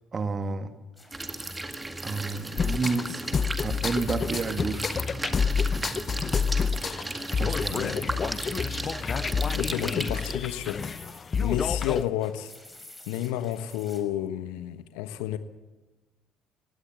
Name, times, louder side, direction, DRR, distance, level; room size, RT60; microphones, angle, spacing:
voice 1, 0.1-0.7 2.0-3.3 3.6-5.0 7.4-7.9, right 4 dB, 35° right, 8 dB, 1.9 m, -30 dB
sound 1, 1.0-14.0, left 1 dB, 15° left, 5.6 m, -51 dB
sound 2, 1.1-10.3, right 2 dB, 20° right, 2.0 m, -35 dB
sound 3, 2.6-12.0, left 6 dB, 35° left, 0.7 m, -29 dB
voice 2, 7.7-8.1 9.5-10.8 11.4-12.5 13.1-15.4, left 12 dB, 70° left, 11 dB, 1.3 m, -31 dB
20.5 x 16.5 x 8.3 m, 1.2 s
hypercardioid pair, 55°, 0 cm